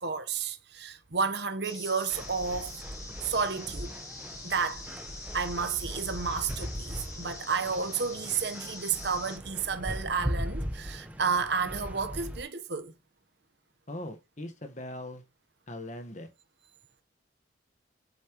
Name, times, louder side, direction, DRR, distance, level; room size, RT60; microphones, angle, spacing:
voice 1, 0.0-2.8 3.2-3.9 4.4-4.8 5.3-12.9, right 5 dB, 55° right, 1.2 m, -31 dB
sound 1, 1.6-9.4, left 2 dB, 15° left, 2.3 m, -44 dB
sound 2, 2.1-12.4, equal, 5° right, 1.3 m, -39 dB
voice 2, 13.9-15.2 15.7-16.3, left 1 dB, 35° left, 1.5 m, -40 dB
8.4 x 7.6 x 3.1 m
head